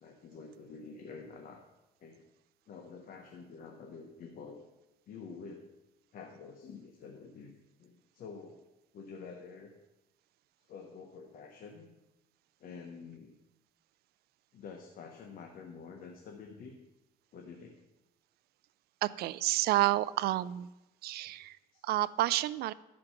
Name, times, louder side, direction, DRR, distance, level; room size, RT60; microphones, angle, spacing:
voice 1, 0.0-1.6 2.0-2.2 2.7-4.6 5.1-5.7 6.1-7.5 7.8-8.6 8.9-9.7 10.7-11.9 12.6-13.4 14.5-16.7 17.3-17.8 21.7-21.8, left 5 dB, 55° left, 2 dB, 1.2 m, -48 dB
voice 2, 19.0-20.7 21.0-21.6 21.8-22.7, right 16 dB, 70° right, 17 dB, 0.4 m, -29 dB
12.5 x 5.2 x 5.9 m, 0.99 s
cardioid pair, 110°, 17 cm